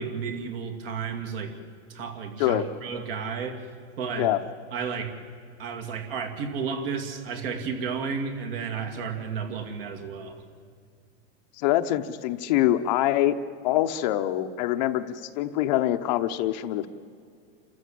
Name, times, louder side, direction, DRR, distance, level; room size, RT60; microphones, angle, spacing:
voice 1, 0.0-1.5 1.9-3.6 4.0-4.3 4.7-5.1 5.6-10.4, right 6 dB, 55° right, 5 dB, 2.7 m, -32 dB
voice 2, 11.6-13.4 13.6-16.9, left 13 dB, 40° left, 9 dB, 0.8 m, -24 dB
28.5 x 14.0 x 7.6 m, 2.3 s
supercardioid pair, 165°, 34 cm